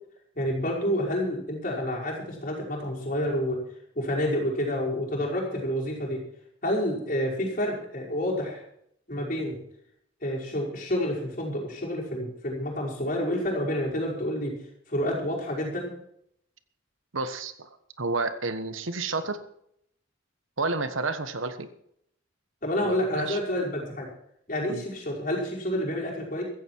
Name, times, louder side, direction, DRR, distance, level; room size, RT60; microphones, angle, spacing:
voice 1, 0.4-3.6 4.0-6.2 6.6-8.6 9.1-9.6 10.2-14.5 14.9-15.9 22.6-24.1 24.5-26.4, equal, 40° left, -3 dB, 5.4 m, -29 dB
voice 2, 17.1-19.4 20.6-21.7 22.8-23.4 24.7-24.8, right 3 dB, 80° right, 10 dB, 1.3 m, -31 dB
15.5 x 14.5 x 4.7 m, 0.72 s
head